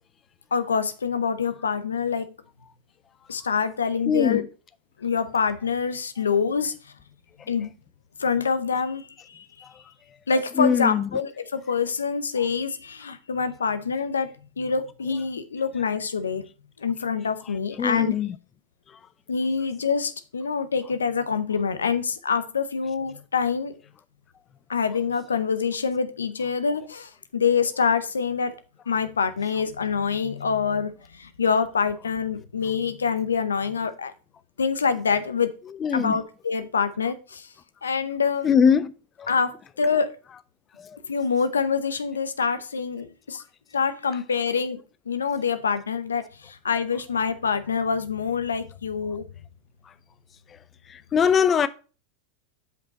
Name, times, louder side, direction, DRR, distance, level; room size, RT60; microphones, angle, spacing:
voice 1, 0.5-2.3 3.3-4.4 5.0-6.7 7.5-7.7 8.2-9.4 10.3-14.3 14.6-16.4 16.8-18.1 19.3-23.8 24.7-28.5 28.9-34.1 34.6-35.5 35.9-37.5 37.8-38.5 39.3-40.2 41.1-43.4 43.7-44.8 45.1-49.2, left 6 dB, 85° left, 0.7 m, -26 dB
voice 2, 4.1-4.4 10.6-11.1 17.8-18.3 35.8-36.2 38.4-38.9 39.2-39.3 40.8-41.0 50.9-51.7, left 7 dB, 30° left, 0.5 m, -21 dB
7.7 x 5.5 x 4.1 m
hypercardioid pair, 95°, 0 cm